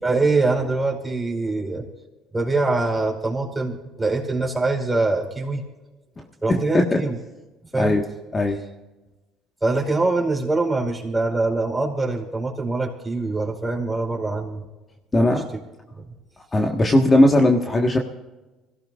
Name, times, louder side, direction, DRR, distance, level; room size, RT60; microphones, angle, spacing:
voice 1, 0.0-1.8 2.3-5.6 6.4-7.2 7.7-8.0 9.6-14.6 15.1-15.2 16.0-16.1, right 3 dB, 15° right, 1 dB, 4.8 m, -23 dB
voice 2, 15.1-15.4 16.5-18.0, left 1 dB, 25° left, 2 dB, 1.6 m, -18 dB
25.0 x 17.0 x 2.5 m, 1.1 s
supercardioid pair, 75°, 0 cm